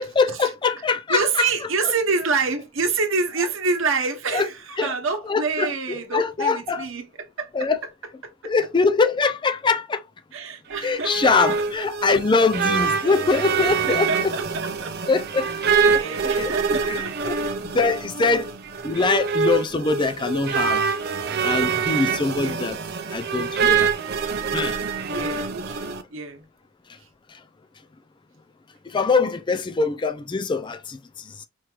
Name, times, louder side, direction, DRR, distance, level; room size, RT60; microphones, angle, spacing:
voice 1, 0.0-1.2 4.3-4.4 4.8-4.9 5.3-5.7 6.1-6.9 7.5-7.8 8.4-10.0 10.8-14.3 15.1-15.5 16.4-17.3 17.7-18.5 18.8-20.8 21.4-22.8 23.1-23.9 24.5-24.8 28.9-31.3, left 4 dB, 25° left, 0.4 m, -23 dB
voice 2, 1.1-7.7 8.2-8.5 10.3-11.4 11.8-11.9 13.0-13.5 13.8-15.0 15.4-17.4 22.3-22.7 24.1-24.5 25.0-26.4 27.0-27.1, right 4 dB, 65° right, 0.9 m, -28 dB
sound 1, 10.7-26.0, right 5 dB, 50° right, 0.6 m, -25 dB
4.4 x 3.1 x 2.3 m
head